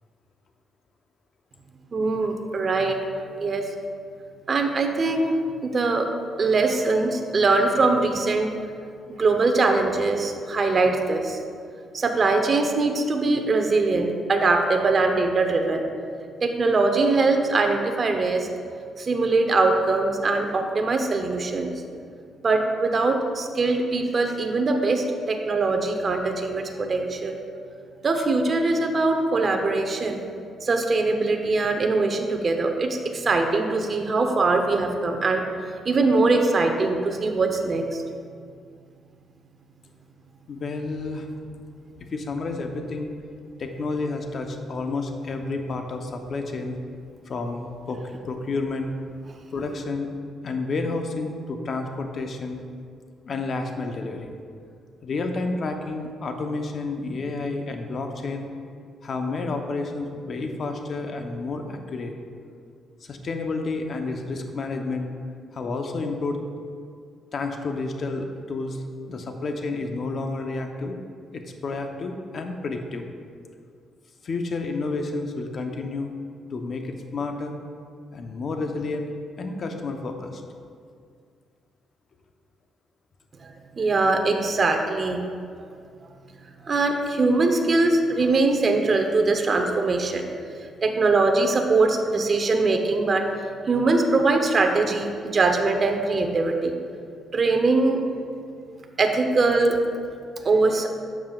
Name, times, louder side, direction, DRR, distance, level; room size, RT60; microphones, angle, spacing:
voice 1, 1.9-3.0 3.4-3.7 4.5-5.3 5.6-6.1 6.4-8.5 9.1-11.4 11.9-15.8 16.4-18.5 19.0-21.7 22.4-27.4 28.0-30.2 30.6-35.4 35.8-38.0 83.4-85.2 86.6-90.2 90.8-93.3 93.7-96.7 97.3-98.0 99.0-99.8 100.4-100.9, right 3 dB, 40° right, 4 dB, 0.9 m, -22 dB
voice 2, 40.5-41.3 42.1-43.1 43.6-46.8 47.3-48.9 49.5-50.1 50.4-52.6 53.2-54.3 55.0-58.5 59.0-62.1 63.0-65.1 65.5-66.4 67.3-71.0 71.3-73.1 74.2-76.1 76.5-77.6 78.1-80.4, left 3 dB, 50° left, 4 dB, 0.9 m, -30 dB
11.5 x 7.2 x 2.5 m, 2.2 s
cardioid pair, 90°, 0 cm